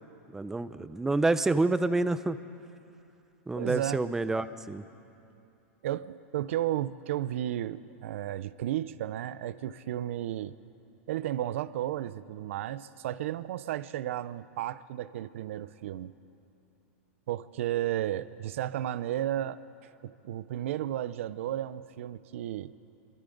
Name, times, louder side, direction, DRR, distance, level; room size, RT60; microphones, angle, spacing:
voice 1, 0.3-2.4 3.5-4.8, right 2 dB, 5° right, 13 dB, 0.5 m, -28 dB
voice 2, 3.5-4.0 5.8-10.5 11.1-16.1 17.3-19.6 20.0-22.7, right 12 dB, 65° right, 16 dB, 0.6 m, -33 dB
28.5 x 24.0 x 4.0 m, 2.8 s
supercardioid pair, 155°, 7 cm